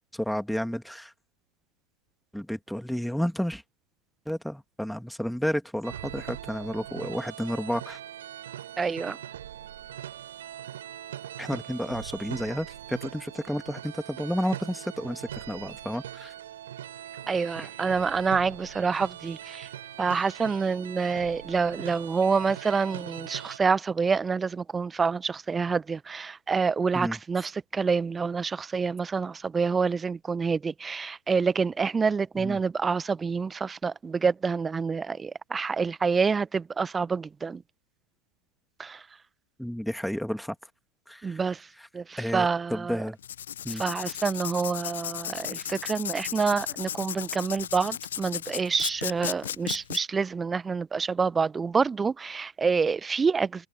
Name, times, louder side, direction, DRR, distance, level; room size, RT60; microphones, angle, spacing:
voice 1, 0.1-1.1 2.3-3.6 4.3-8.0 11.4-16.3 17.6-17.7 26.9-27.2 32.3-32.6 39.6-40.5 41.1-41.4 41.8-41.9 42.2-43.2 43.6-43.8, equal, ahead, 2.9 m, -31 dB
sound 1, 5.8-23.6, right 11 dB, 60° right, 4.7 m, -41 dB
voice 2, 8.8-9.2 17.3-19.7 20.0-37.6 38.8-39.0 41.2-41.7 41.9-43.0 43.7-53.7, right 5 dB, 15° right, 1.2 m, -27 dB
Writing, 43.2-50.0, left 10 dB, 65° left, 0.9 m, -35 dB
figure-of-eight pair, 90°, 0 cm